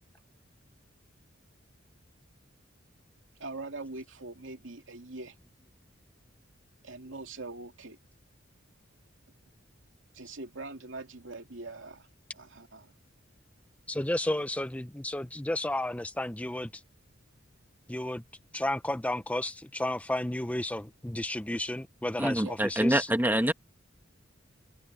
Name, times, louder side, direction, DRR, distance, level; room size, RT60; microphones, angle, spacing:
voice 1, 3.4-5.4 6.8-8.0 10.1-12.1 12.3-12.9 22.4-22.6, right 3 dB, 75° right, 2.6 m, -42 dB
voice 2, 13.9-16.7 17.9-18.2 18.5-23.1, left 1 dB, 5° left, 0.5 m, -32 dB
voice 3, 22.2-23.5, right 1 dB, 10° right, 1.5 m, -26 dB
open air
head